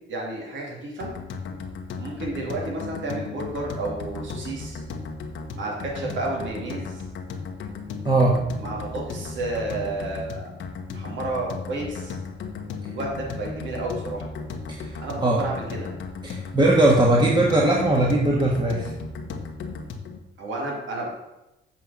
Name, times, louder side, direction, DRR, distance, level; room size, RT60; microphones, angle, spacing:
voice 1, 0.1-1.1 2.0-4.8 5.5-7.0 8.6-10.5 10.9-12.2 12.9-14.2 15.0-15.9 20.4-21.1, right 2 dB, 75° right, -2 dB, 2.8 m, -31 dB
sound 1, 1.0-20.2, left 4 dB, 75° left, 1.1 m, -35 dB
voice 2, 8.0-8.4 14.7-14.9 15.2-15.4 16.2-18.9, right 2 dB, 20° right, -2 dB, 1.4 m, -19 dB
7.5 x 4.9 x 7.0 m, 0.96 s
cardioid pair, 90°, 20 cm